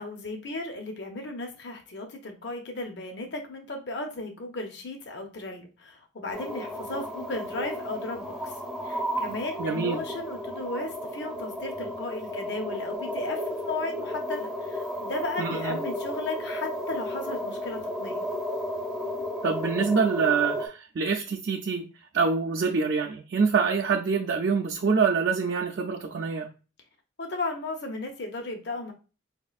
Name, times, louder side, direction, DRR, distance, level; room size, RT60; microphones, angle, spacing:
voice 1, 0.0-8.6 8.8-18.3 27.2-28.9, left 2 dB, 55° left, 3 dB, 0.7 m, -35 dB
sound 1, 6.3-20.7, equal, ahead, 0.5 m, -33 dB
voice 2, 9.6-10.0 15.4-15.8 19.4-21.8 22.1-26.5, right 5 dB, 60° right, -1 dB, 0.4 m, -25 dB
4.3 x 2.4 x 2.4 m, 0.33 s
head